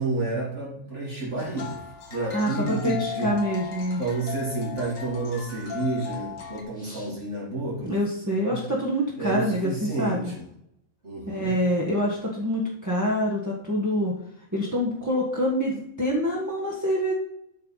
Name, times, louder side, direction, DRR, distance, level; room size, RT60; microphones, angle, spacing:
voice 1, 0.0-1.8 2.1-3.3 4.0-7.9 8.3-8.6 9.2-10.4 11.0-11.5, right 2 dB, 55° right, -7 dB, 2.9 m, -30 dB
sound 1, 1.4-6.6, left 7 dB, 70° left, 2.1 m, -37 dB
voice 2, 2.3-4.0 6.8-7.1 7.8-10.3 11.3-14.1 14.5-17.1, equal, 15° right, -5 dB, 1.7 m, -26 dB
11.5 x 4.6 x 5.7 m, 0.76 s
omnidirectional pair, 1.4 m